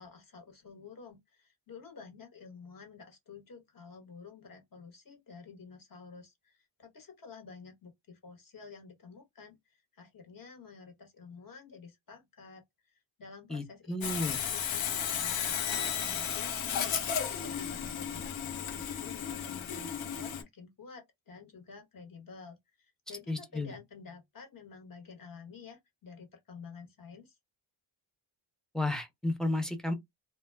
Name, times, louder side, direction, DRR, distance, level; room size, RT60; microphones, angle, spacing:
voice 1, 0.0-14.2 14.5-27.4, left 5 dB, 45° left, 1.0 m, -51 dB
voice 2, 13.5-14.4 23.3-23.8 28.7-29.9, left 2 dB, ahead, 0.4 m, -32 dB
Sawing, 14.0-20.4, left 8 dB, 80° left, 0.7 m, -34 dB
2.1 x 2.0 x 3.2 m
wide cardioid pair, 140°, 47 cm